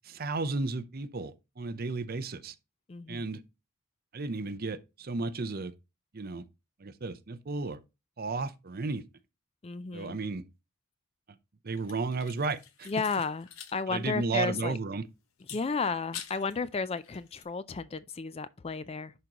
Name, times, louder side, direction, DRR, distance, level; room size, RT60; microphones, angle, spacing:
voice 1, 0.0-2.5 3.1-3.4 4.1-5.7 6.1-6.4 6.8-7.8 8.2-9.0 9.9-10.4 11.6-12.9 13.9-15.0, right 3 dB, 45° right, 0.6 m, -33 dB
voice 2, 2.9-3.3 9.6-10.2 12.9-14.8 15.5-19.1, left 4 dB, 25° left, 0.4 m, -33 dB
sound 1, 11.8-13.8 14.1-14.2 15.4-16.6 17.0-17.4, left 9 dB, 70° left, 1.0 m, -46 dB
11.0 x 3.9 x 2.9 m
head